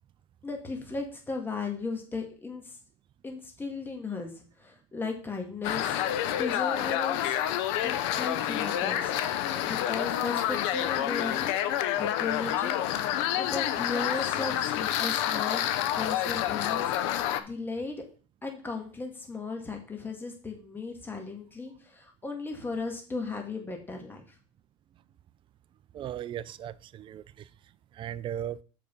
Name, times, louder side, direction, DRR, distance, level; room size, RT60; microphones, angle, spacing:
voice 1, 0.4-2.8 3.2-6.0 6.4-7.4 7.8-9.1 9.6-15.6 16.0-18.0 18.4-24.2, left 3 dB, 15° left, 1.8 m, -36 dB
sound 1, 5.6-17.4, left 11 dB, 70° left, 0.8 m, -28 dB
voice 2, 25.9-27.5 27.9-28.6, right 10 dB, 35° right, 0.5 m, -37 dB
6.9 x 5.0 x 5.4 m
supercardioid pair, 115°, 16 cm